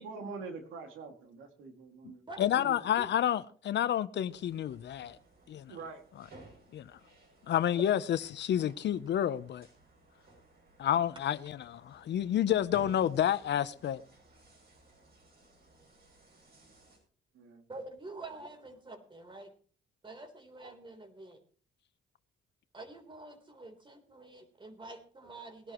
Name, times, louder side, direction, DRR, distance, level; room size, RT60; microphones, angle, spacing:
voice 1, 0.0-2.2 2.6-2.8 5.7-6.0 17.3-17.6, right 4 dB, 90° right, 2.4 m, -44 dB
voice 2, 2.4-5.2 5.5-5.7 6.7-6.9 7.5-9.7 10.8-14.0, left 10 dB, 65° left, 0.8 m, -29 dB
sound 1, 4.3-17.0, right 2 dB, 50° right, 7.5 m, -58 dB
voice 3, 17.7-19.5 20.0-21.4 22.7-25.7, right 2 dB, 25° right, 3.7 m, -47 dB
21.5 x 11.0 x 3.1 m
cardioid pair, 90°, 20 cm